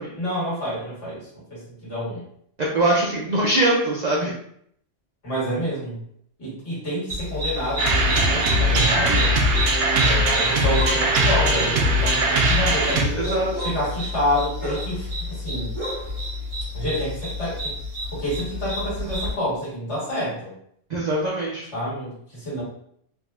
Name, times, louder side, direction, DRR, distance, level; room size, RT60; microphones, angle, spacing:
voice 1, 0.2-2.2 5.2-6.0 6.4-9.3 10.0-13.2 13.6-15.7 16.7-17.7 18.1-20.5 21.7-22.6, equal, 65° left, -7 dB, 1.7 m, -28 dB
voice 2, 2.6-4.3 13.1-13.6 20.9-21.7, right 1 dB, 60° right, -5 dB, 0.4 m, -22 dB
sound 1, 7.1-19.3, left 1 dB, 40° right, 1.2 m, -30 dB
sound 2, 7.8-13.0, right 1 dB, 90° right, 1.0 m, -20 dB
3.6 x 2.1 x 2.3 m, 0.69 s
omnidirectional pair, 1.3 m